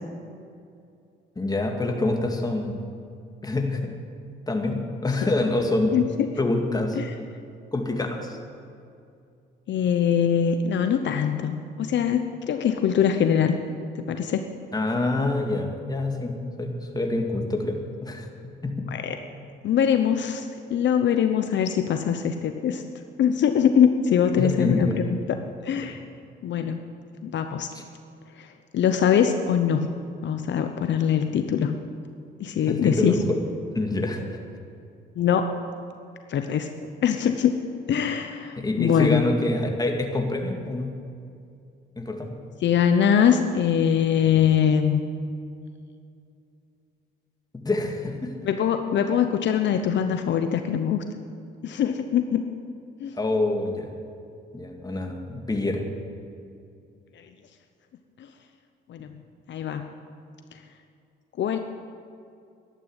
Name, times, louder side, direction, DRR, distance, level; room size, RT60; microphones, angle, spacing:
voice 1, 1.4-2.9 3.4-3.9 4.5-6.0 6.4-7.0 7.7-8.4 14.7-18.3 18.6-18.7 24.4-25.0 27.7-27.8 32.7-33.2 33.7-34.4 38.6-40.9 42.0-42.3 47.6-48.3 53.2-53.9 54.5-55.8, left 2 dB, 20° left, 3 dB, 2.2 m, -26 dB
voice 2, 9.7-13.6 14.1-14.5 18.9-19.2 19.6-22.8 23.2-25.2 25.6-26.0 26.4-26.8 27.2-27.7 28.4-29.9 30.2-31.7 32.4-33.2 35.2-35.5 36.3-36.7 37.0-37.5 37.9-39.2 42.6-45.0 48.4-51.0 51.6-52.4 53.0-53.2 57.2-57.3 58.9-59.1 59.5-59.9 61.4-61.6, left 8 dB, 65° left, 7 dB, 0.9 m, -22 dB
12.5 x 11.0 x 8.1 m, 2.5 s
cardioid pair, 90°, 20 cm